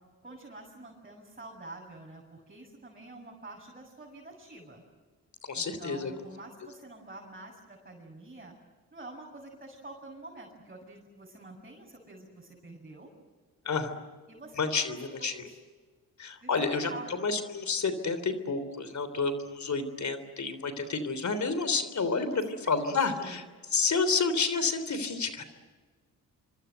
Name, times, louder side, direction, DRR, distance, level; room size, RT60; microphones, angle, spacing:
voice 1, 0.2-4.8 5.5-8.5 8.9-13.1 14.3-15.6 16.4-17.2 22.3-23.4, right 2 dB, 25° right, -2 dB, 7.5 m, -47 dB
voice 2, 5.5-6.1 13.6-14.0 14.6-15.5 16.2-23.4 23.7-25.4, left 4 dB, 50° left, 11 dB, 3.4 m, -30 dB
25.5 x 25.5 x 8.1 m, 1.4 s
cardioid pair, 70°, 36 cm